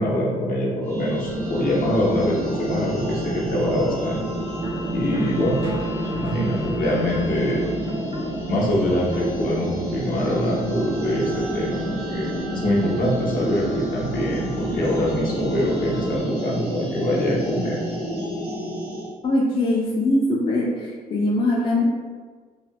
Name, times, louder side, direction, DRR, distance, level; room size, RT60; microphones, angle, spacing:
voice 1, 0.0-4.2 4.9-5.6 6.1-7.6 8.5-17.8, equal, 60° left, -4 dB, 0.8 m, -24 dB
sound 1, 0.8-19.1, equal, 90° right, 1.3 m, -30 dB
sound 2, 1.2-16.2, right 3 dB, 35° right, 0.5 m, -34 dB
voice 2, 19.2-21.8, left 1 dB, 30° left, -4 dB, 0.4 m, -22 dB
3.1 x 2.1 x 2.7 m, 1.5 s
cardioid pair, 110°, 17 cm